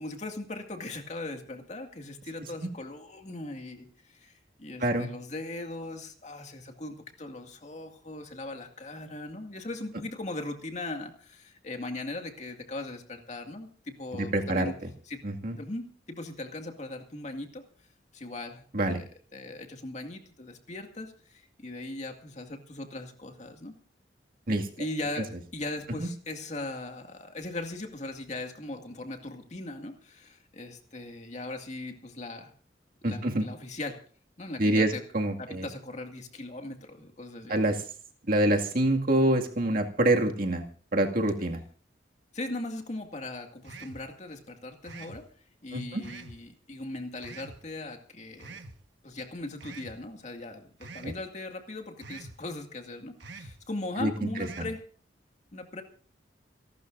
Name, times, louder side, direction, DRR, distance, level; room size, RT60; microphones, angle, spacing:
voice 1, 0.0-4.3 4.6-14.7 15.1-15.2 15.6-17.6 18.1-18.6 18.9-19.0 19.3-23.7 24.8-32.5 33.0-34.0 34.4-35.0 35.4-37.5 42.3-45.3 45.6-48.6 49.0-54.8 55.5-55.8, left 2 dB, 40° left, 4 dB, 2.2 m, -39 dB
voice 2, 14.2-14.7 15.2-15.6 18.7-19.0 24.5-24.7 25.2-25.3 26.0-26.1 33.0-33.5 34.6-35.7 37.5-37.8 38.3-40.6 40.9-41.6 45.7-46.0 51.0-51.1 54.0-54.3 54.6-54.7, right 1 dB, 55° right, 2 dB, 2.2 m, -26 dB
sound 1, 43.6-44.1 44.8-45.2 46.0-46.4 47.2-47.6 48.4-48.8 49.6-50.0 50.8-51.2 52.0-52.4 53.2-53.6 54.4-54.8, right 3 dB, 90° right, 1.3 m, -45 dB
28.5 x 12.0 x 2.6 m, 0.44 s
head